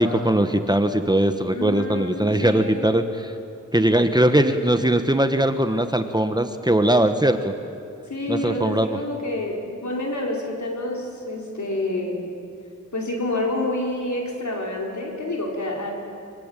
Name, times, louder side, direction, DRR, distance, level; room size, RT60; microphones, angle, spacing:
voice 1, 0.0-3.3 3.7-7.5 8.3-9.0, right 1 dB, 15° right, 8 dB, 1.3 m, -20 dB
voice 2, 1.5-2.9 8.1-12.2 12.9-15.9, left 1 dB, 70° left, 0 dB, 5.2 m, -28 dB
25.0 x 24.0 x 9.1 m, 2.4 s
wide cardioid pair, 75°, 30 cm